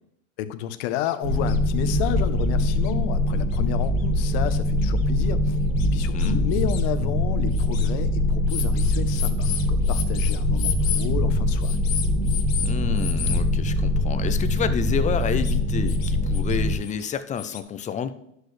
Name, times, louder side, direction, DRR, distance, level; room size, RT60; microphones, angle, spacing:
voice 1, 0.4-5.6 5.9-11.8, left 11 dB, 55° left, 10 dB, 0.9 m, -31 dB
sound 1, 1.1-1.2 1.5-1.6 2.4-2.5 2.8-2.9 3.5-3.6 4.5-4.6 5.0-5.1 5.8-6.8 7.5-7.9 8.5-11.1 11.6-12.7 13.0-13.4 15.2-15.5 15.9-16.6 16.8-17.6, left 10 dB, 85° left, 1.1 m, -33 dB
sound 2, 1.2-16.8, left 1 dB, 80° right, 2.3 m, -23 dB
voice 2, 6.1-6.4 12.6-18.1, left 7 dB, 20° left, 12 dB, 0.5 m, -29 dB
11.0 x 6.3 x 3.3 m, 0.76 s
hypercardioid pair, 110°, 39 cm